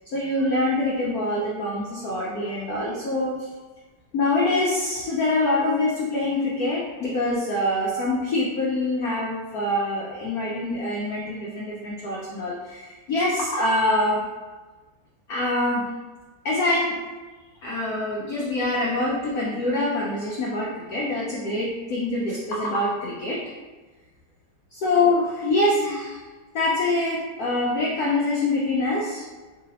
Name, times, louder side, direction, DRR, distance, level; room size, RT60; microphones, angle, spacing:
voice 1, 0.1-3.5 4.1-14.2 15.3-15.9 16.4-17.0 17.6-23.4 24.7-26.2 26.5-29.2, left 2 dB, 85° left, -4 dB, 0.8 m, -25 dB
3.9 x 3.8 x 2.9 m, 1.3 s
omnidirectional pair, 2.4 m